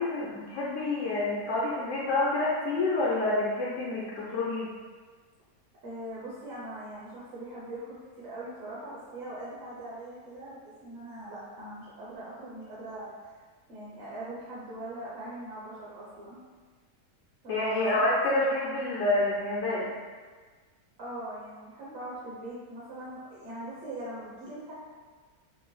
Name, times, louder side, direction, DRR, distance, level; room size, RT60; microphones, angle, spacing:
voice 1, 0.0-4.7 17.5-19.9, left 2 dB, 65° left, -5 dB, 0.8 m, -28 dB
voice 2, 5.8-13.1 13.7-16.4 17.4-18.4 21.0-24.7, right 1 dB, 50° right, -8 dB, 1.0 m, -41 dB
5.8 x 2.0 x 3.2 m, 1.5 s
omnidirectional pair, 1.7 m